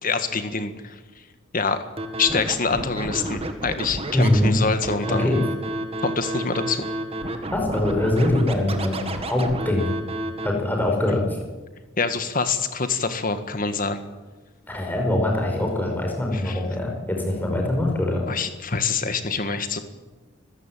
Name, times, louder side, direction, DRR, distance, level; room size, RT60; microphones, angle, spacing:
voice 1, 0.0-1.0 1.5-1.8 2.2-5.3 6.0-6.9 11.1-11.2 12.0-14.0 16.4-16.6 18.3-19.8, left 4 dB, 40° left, 9 dB, 1.8 m, -25 dB
Scratching (performance technique), 2.0-10.5, right 1 dB, 30° right, 2.0 m, -30 dB
voice 2, 4.1-4.5 5.1-5.4 7.5-9.9 10.4-11.4 14.7-18.3, left 1 dB, 10° left, 0 dB, 5.2 m, -23 dB
25.5 x 15.5 x 9.2 m, 1.3 s
head